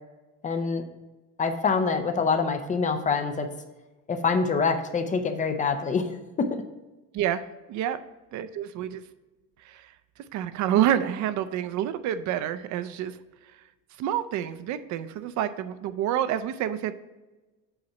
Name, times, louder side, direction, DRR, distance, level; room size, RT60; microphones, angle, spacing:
voice 1, 0.4-0.8 1.4-3.5 4.1-6.5, left 5 dB, 20° left, 7 dB, 0.5 m, -25 dB
voice 2, 7.7-8.0 8.3-9.0 9.6-9.9 10.3-13.2 14.0-16.9, right 11 dB, 55° right, 12 dB, 0.5 m, -28 dB
7.9 x 4.2 x 5.7 m, 1.1 s
cardioid pair, 170°, 34 cm